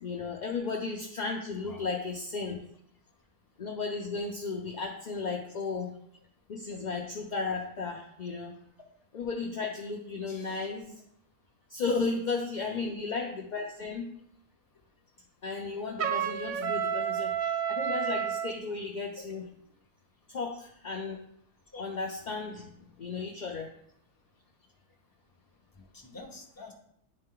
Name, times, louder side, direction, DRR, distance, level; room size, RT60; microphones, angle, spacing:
voice 1, 0.0-2.6 3.6-5.9 6.5-8.6 9.1-11.0 11.7-14.1 15.4-19.4 20.3-21.2 21.8-22.7 23.0-23.7, left 4 dB, 55° left, 1 dB, 0.5 m, -34 dB
voice 2, 10.3-10.7 12.6-13.0 21.7-21.8 25.7-26.7, left 3 dB, 20° left, -1 dB, 0.8 m, -48 dB
Trumpet, 16.0-18.5, right 8 dB, 75° right, 0.4 m, -30 dB
9.6 x 3.3 x 3.7 m, 0.72 s
omnidirectional pair, 1.4 m